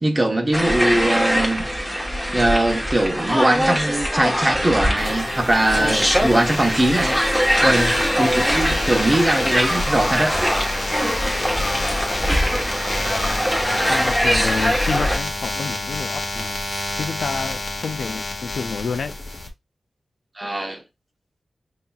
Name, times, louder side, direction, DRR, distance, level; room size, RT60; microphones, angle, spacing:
voice 1, 0.0-1.7 2.3-7.2 7.6-10.4 20.4-20.8, right 1 dB, 25° right, 0.9 m, -21 dB
sound 1, 0.5-15.2, equal, 5° right, 1.2 m, -22 dB
sound 2, 5.0-19.5, left 2 dB, 50° left, 1.1 m, -29 dB
voice 2, 5.6-6.0 7.7-7.9 11.7-12.4 12.9-16.6 17.0-19.1, left 5 dB, 85° left, 0.4 m, -30 dB
5.3 x 2.9 x 2.4 m
wide cardioid pair, 80°, 0 cm